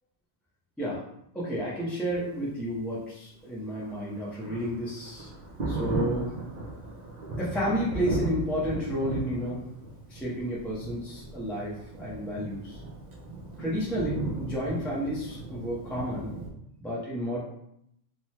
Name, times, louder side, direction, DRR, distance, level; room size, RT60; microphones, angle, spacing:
voice 1, 1.3-5.3 5.7-6.3 7.4-9.6 10.1-12.8 13.6-16.3 16.8-17.4, equal, ahead, -7 dB, 0.5 m, -31 dB
Thunder, 3.7-16.5, right 2 dB, 50° right, 0.5 m, -36 dB
3.3 x 2.2 x 2.8 m, 0.75 s
omnidirectional pair, 1.4 m